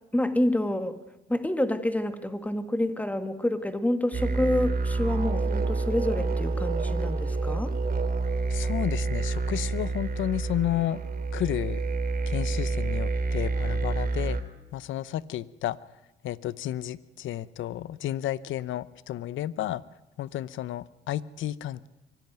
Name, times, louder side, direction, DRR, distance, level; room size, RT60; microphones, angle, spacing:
voice 1, 0.1-1.0 1.3-7.7, left 1 dB, 5° left, 9 dB, 1.9 m, -28 dB
sound 1, 4.1-14.4, right 3 dB, 45° right, 2.7 m, -28 dB
voice 2, 8.5-11.0 11.3-11.8 12.3-14.4 14.7-15.8 16.2-19.8 20.2-21.9, left 12 dB, 75° left, 18 dB, 0.8 m, -32 dB
24.0 x 16.5 x 9.4 m, 0.96 s
cardioid pair, 90°, 20 cm